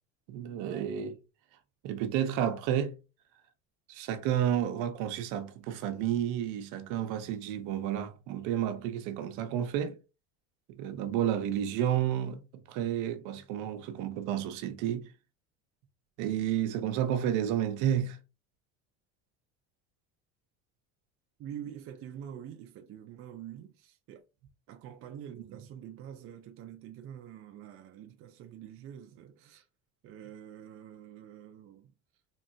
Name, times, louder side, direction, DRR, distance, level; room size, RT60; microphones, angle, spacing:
voice 1, 0.3-1.2 1.8-3.0 3.9-10.0 10.7-12.4 12.7-15.1 16.2-18.2, right 10 dB, 65° right, 0.9 m, -31 dB
voice 2, 21.4-24.2 24.7-29.7 30.0-31.9, right 9 dB, 45° right, 0.6 m, -46 dB
4.2 x 3.2 x 2.7 m
cardioid pair, 145°, 32 cm